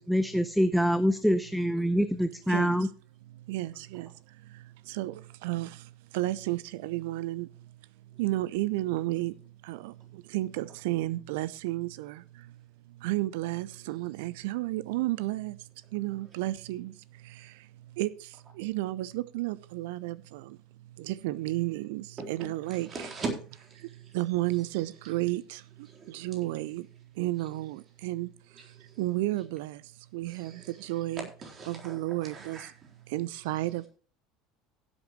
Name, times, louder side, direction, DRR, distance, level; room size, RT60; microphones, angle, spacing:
voice 1, 0.0-2.9, equal, ahead, 0.7 m, -25 dB
voice 2, 3.3-7.7 8.1-12.6 12.9-20.6 20.8-23.1 23.8-26.9 27.1-29.8 30.1-31.3 31.7-32.7 33.1-33.9, right 17 dB, 65° right, 0.5 m, -33 dB
voice 3, 22.2-22.5 22.9-23.8 25.9-26.1 28.9-29.0 30.3-30.7 31.4-32.7, right 3 dB, 35° right, 3.8 m, -39 dB
16.0 x 8.1 x 3.1 m
figure-of-eight pair, 70°, 0 cm